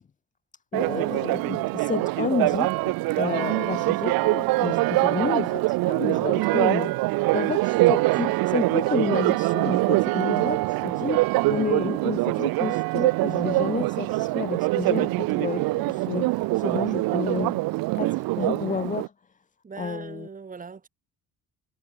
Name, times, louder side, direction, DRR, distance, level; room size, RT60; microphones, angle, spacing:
voice 1, 0.7-7.0 7.3-17.7 18.0-19.1 19.8-20.3, left 6 dB, 20° left, 0.7 m, -31 dB
Church bell, 0.7-19.1, right 21 dB, 75° right, 0.5 m, -24 dB
voice 2, 19.6-20.9, right 5 dB, 25° right, 2.5 m, -40 dB
cardioid pair, 145°, 35 cm